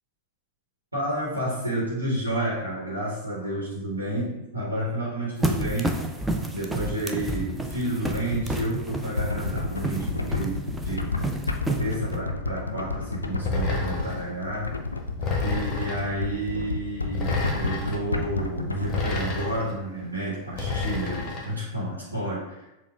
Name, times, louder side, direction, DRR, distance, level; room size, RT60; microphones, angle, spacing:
voice 1, 0.9-6.0 6.5-11.1 11.8-14.7 15.4-22.7, right 1 dB, 80° right, -7 dB, 1.1 m, -30 dB
sound 1, 5.4-12.2, right 2 dB, 10° right, 0.4 m, -30 dB
sound 2, 9.1-19.2, left 3 dB, 80° left, 0.3 m, -31 dB
sound 3, 13.4-14.3 15.2-16.1 17.1-18.0 18.8-19.7 20.5-21.5, left 3 dB, 30° left, 0.8 m, -29 dB
6.7 x 2.3 x 2.3 m, 0.95 s
figure-of-eight pair, 90°, 0 cm